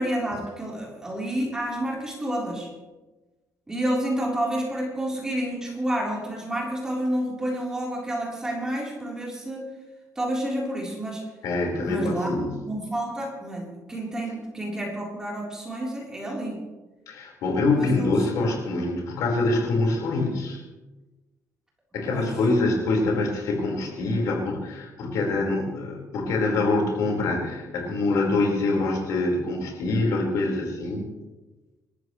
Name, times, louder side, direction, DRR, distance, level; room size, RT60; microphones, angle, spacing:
voice 1, 0.0-2.7 3.7-9.7 10.2-11.2 11.8-16.6 17.7-18.1 22.1-22.3, right 1 dB, 10° right, -3 dB, 3.8 m, -29 dB
voice 2, 11.4-12.7 17.1-20.6 21.9-31.1, left 2 dB, 70° left, 0 dB, 4.6 m, -25 dB
27.0 x 13.5 x 3.2 m, 1.2 s
cardioid pair, 165°, 6 cm